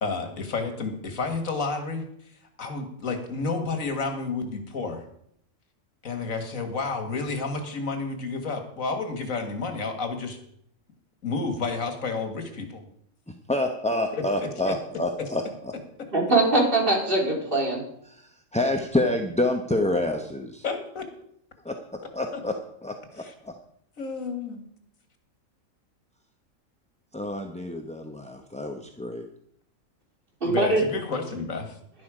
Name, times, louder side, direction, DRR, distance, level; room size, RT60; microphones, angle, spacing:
voice 1, 0.0-5.1 6.0-10.4 11.2-12.8 14.1-14.8 20.6-21.1 23.2-23.3 24.0-24.6 30.5-31.8, left 4 dB, 90° left, 6 dB, 2.2 m, -31 dB
voice 2, 13.3-15.7 18.1-20.6 21.6-22.5 22.8-23.5 27.1-29.3, left 1 dB, 5° left, 4 dB, 0.7 m, -28 dB
voice 3, 16.1-17.8 30.4-30.8, right 2 dB, 40° right, -1 dB, 3.5 m, -22 dB
12.0 x 11.0 x 5.0 m, 0.68 s
omnidirectional pair, 1.4 m